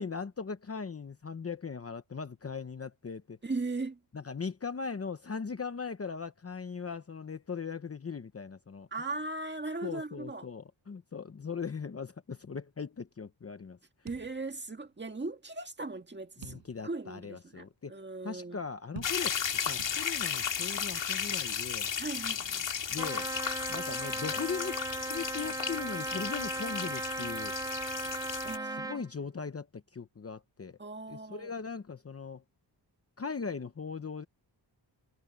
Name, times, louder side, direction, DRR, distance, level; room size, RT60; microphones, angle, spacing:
voice 1, 0.0-3.4 4.1-8.9 9.8-13.8 16.4-17.9 18.2-21.9 22.9-23.3 23.7-24.8 25.1-27.5 28.8-30.8 31.1-32.4 33.2-34.2, left 5 dB, 30° left, 0.9 m, -39 dB
voice 2, 3.4-4.0 8.9-10.5 14.0-18.6 22.0-22.7 28.4-29.1 30.8-31.5, right 3 dB, 25° right, 1.8 m, -38 dB
sound 1, 14.1-14.9 15.2-15.3 16.4-17.1 17.6-17.7 18.9-19.5 19.8-20.4, right 7 dB, 80° right, 7.4 m, -48 dB
sound 2, 19.0-28.6, left 7 dB, 80° left, 2.3 m, -35 dB
Trumpet, 23.0-29.0, right 2 dB, 10° right, 0.6 m, -37 dB
wide cardioid pair, 160°, 44 cm